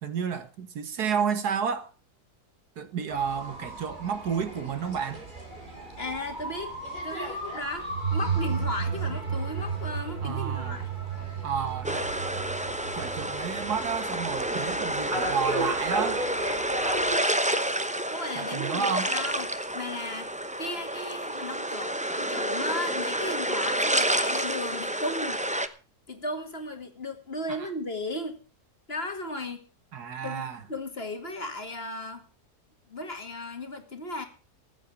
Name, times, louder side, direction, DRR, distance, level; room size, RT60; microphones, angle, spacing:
voice 1, 0.0-1.9 2.8-5.3 10.2-10.8 11.4-12.1 12.9-16.3 18.4-19.1 27.5-27.7 29.9-30.6, right 7 dB, 75° right, 1.9 m, -31 dB
sound 1, 3.1-17.2, right 1 dB, 30° right, 3.8 m, -37 dB
voice 2, 6.0-6.7 7.0-10.9 18.1-25.4 26.1-28.4 28.9-29.6 30.2-30.4 30.7-32.2 32.9-34.2, left 2 dB, 40° left, 2.2 m, -35 dB
sound 2, 7.9-14.4, right 6 dB, 50° right, 1.2 m, -32 dB
sound 3, 11.8-25.7, right 1 dB, 10° right, 0.5 m, -29 dB
14.5 x 8.3 x 7.1 m
omnidirectional pair, 1.7 m